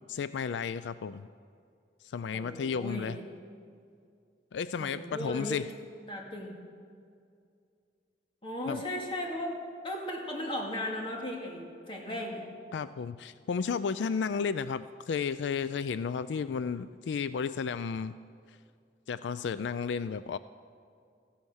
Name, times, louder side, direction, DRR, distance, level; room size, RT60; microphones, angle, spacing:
voice 1, 0.1-1.3 2.0-3.2 4.5-5.7 8.7-8.8 12.7-18.1 19.1-20.4, left 6 dB, 85° left, 14 dB, 0.4 m, -33 dB
voice 2, 2.3-3.1 4.8-5.6 6.1-6.6 8.4-9.5 9.8-12.5, left 1 dB, 30° left, 0 dB, 2.4 m, -36 dB
15.0 x 14.0 x 6.3 m, 2.3 s
head